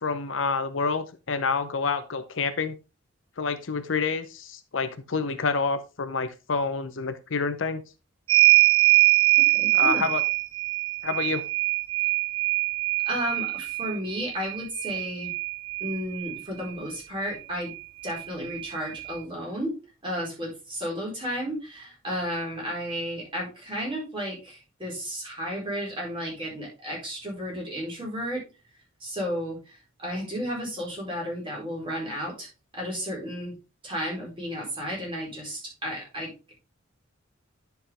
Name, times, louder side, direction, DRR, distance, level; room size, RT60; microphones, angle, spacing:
voice 1, 0.0-2.8 3.4-7.8 9.7-10.2 11.0-11.4, left 4 dB, 65° left, 10 dB, 0.7 m, -28 dB
sound 1, 8.3-16.4 17.7-17.8 18.1-19.1, right 22 dB, 75° right, 0.4 m, -23 dB
voice 2, 9.6-10.1 13.0-15.3 15.8-17.7 18.0-19.7 20.0-28.4 29.0-32.5 32.7-33.5 33.8-36.3, equal, 25° right, -3 dB, 4.5 m, -33 dB
10.0 x 5.8 x 3.4 m, 0.29 s
head